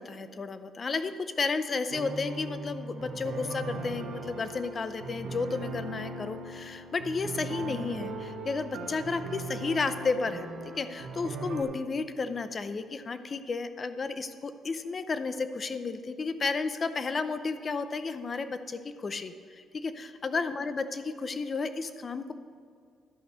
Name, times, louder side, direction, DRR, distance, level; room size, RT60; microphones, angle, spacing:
voice 1, 0.0-10.5 10.8-22.3, left 4 dB, 40° left, 11 dB, 0.6 m, -32 dB
sound 1, 1.9-11.6, right 3 dB, 90° right, 1.5 m, -39 dB
11.5 x 5.3 x 6.6 m, 2.1 s
cardioid pair, 90°, 0 cm